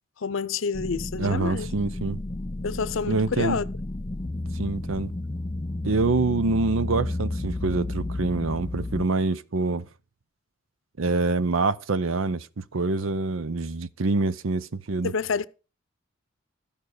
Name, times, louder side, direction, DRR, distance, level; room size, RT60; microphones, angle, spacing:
voice 1, 0.2-1.7 2.6-3.6 15.0-15.5, left 5 dB, 75° left, 0.6 m, -28 dB
sound 1, 0.7-9.0, left 2 dB, 25° left, 0.5 m, -32 dB
voice 2, 1.2-2.2 3.1-3.6 4.5-5.1 5.8-9.9 11.0-15.1, right 3 dB, 85° right, 0.7 m, -26 dB
13.5 x 5.3 x 6.5 m
head